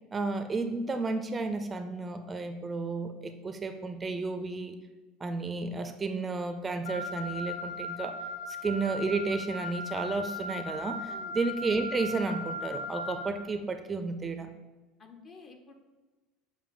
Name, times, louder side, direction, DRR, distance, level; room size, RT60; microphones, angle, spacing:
voice 1, 0.1-4.8 5.2-8.2 8.5-14.5, right 3 dB, 25° right, 8 dB, 0.5 m, -32 dB
Wind instrument woodwind instrument, 6.8-13.3, left 1 dB, 90° left, 0.8 m, -38 dB
voice 2, 15.0-15.7, left 3 dB, 35° left, 4 dB, 0.9 m, -50 dB
7.1 x 2.6 x 5.1 m, 1.2 s
hypercardioid pair, 75°, 0 cm